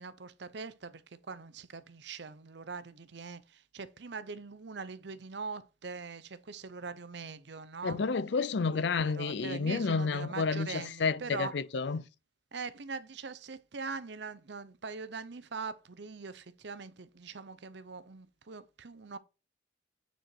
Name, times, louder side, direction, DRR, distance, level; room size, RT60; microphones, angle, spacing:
voice 1, 0.0-8.0 8.7-11.5 12.5-19.2, right 4 dB, 65° right, 0.7 m, -42 dB
voice 2, 7.8-12.1, left 4 dB, 65° left, 0.5 m, -30 dB
9.3 x 4.4 x 4.5 m
head